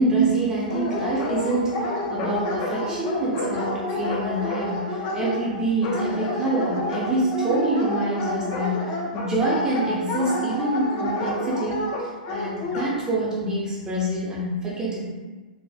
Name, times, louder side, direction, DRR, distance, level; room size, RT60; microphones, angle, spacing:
voice 1, 0.0-15.0, right 2 dB, 15° right, -6 dB, 0.5 m, -26 dB
Dog, 0.7-12.9, left 2 dB, 35° left, 0.5 m, -29 dB
3.9 x 2.0 x 2.3 m, 1.3 s
figure-of-eight pair, 110°, 5 cm